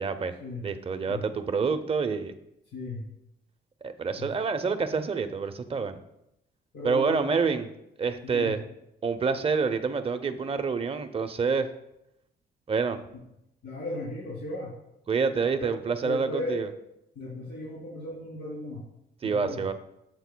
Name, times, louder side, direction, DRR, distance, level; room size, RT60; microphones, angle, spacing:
voice 1, 0.0-0.4 0.6-2.3 3.8-6.0 6.8-7.7 8.0-8.6 9.0-11.7 12.7-13.0 15.1-16.7 19.2-19.7, right 5 dB, 30° right, 8 dB, 0.6 m, -27 dB
voice 2, 2.7-3.1 4.2-4.3 6.7-7.4 8.2-8.5 13.6-14.7 15.6-15.7 16.0-16.6 17.1-18.8 19.2-19.6, left 2 dB, 85° left, -6 dB, 2.7 m, -36 dB
12.5 x 8.1 x 2.2 m, 0.83 s
cardioid pair, 125°, 18 cm